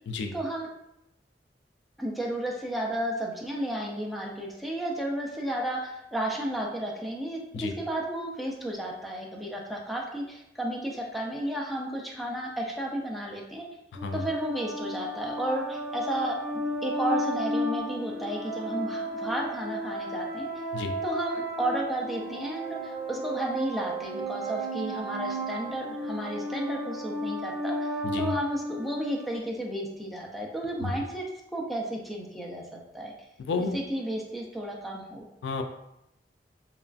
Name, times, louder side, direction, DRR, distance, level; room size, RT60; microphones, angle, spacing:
voice 1, 0.3-0.7 2.0-13.7 14.1-20.5 21.0-27.9 28.2-31.2 31.5-33.1 33.6-35.2, right 1 dB, ahead, -2 dB, 0.4 m, -33 dB
sound 1, 13.9-29.4, equal, 65° right, 1.0 m, -33 dB
voice 2, 33.4-33.8 35.4-35.6, left 3 dB, 80° left, 6 dB, 0.3 m, -31 dB
2.9 x 2.4 x 2.4 m, 0.84 s
head